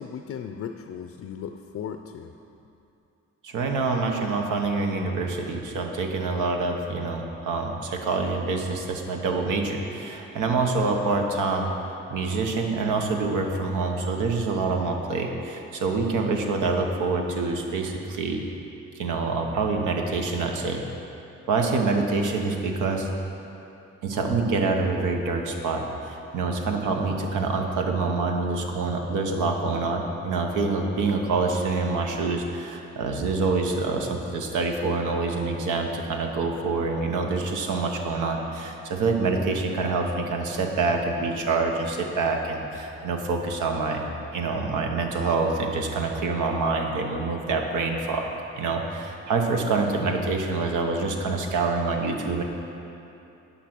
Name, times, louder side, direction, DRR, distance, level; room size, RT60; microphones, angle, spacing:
voice 1, 0.0-2.3, left 7 dB, 50° left, 7 dB, 0.5 m, -36 dB
voice 2, 3.4-18.4 18.9-20.8 21.5-23.1 24.0-44.0 44.3-48.3 48.6-52.4, right 3 dB, 85° right, 2 dB, 1.1 m, -26 dB
10.0 x 5.4 x 6.1 m, 2.8 s
cardioid pair, 90°, 30 cm